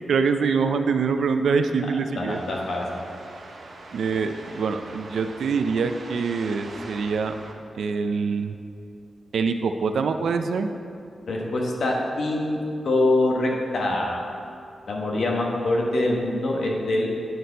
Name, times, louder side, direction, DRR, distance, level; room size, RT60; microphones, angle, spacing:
voice 1, 0.1-2.4 3.9-7.3 7.8-8.6 9.3-10.7, right 5 dB, 80° right, 7 dB, 0.4 m, -24 dB
voice 2, 2.2-3.0 11.3-12.6 12.8-14.2 14.9-17.1, left 2 dB, 65° left, -1 dB, 1.2 m, -24 dB
sound 1, 2.3-7.5, right 2 dB, 65° right, 0.8 m, -42 dB
9.3 x 4.2 x 4.0 m, 2.6 s
wide cardioid pair, 140°, 0 cm